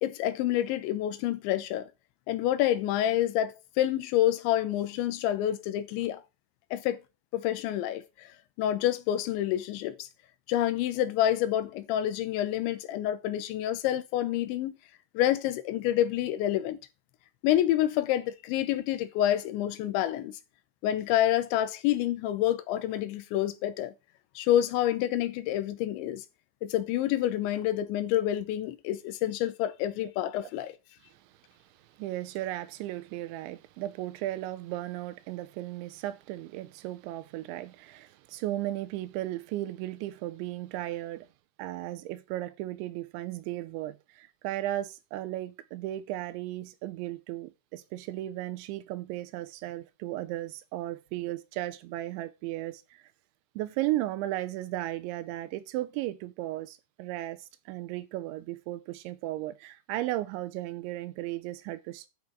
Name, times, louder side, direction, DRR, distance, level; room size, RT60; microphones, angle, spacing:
voice 1, 0.0-1.9 2.3-6.2 6.7-7.0 7.3-8.3 8.6-10.1 10.5-14.7 15.1-16.8 17.4-20.4 20.8-23.9 24.4-26.2 26.6-30.7, left 12 dB, 80° left, 3.1 m, -28 dB
voice 2, 32.0-41.3 41.6-53.0 53.6-62.1, right 15 dB, 85° right, 2.9 m, -35 dB
10.5 x 6.2 x 4.5 m
omnidirectional pair, 5.4 m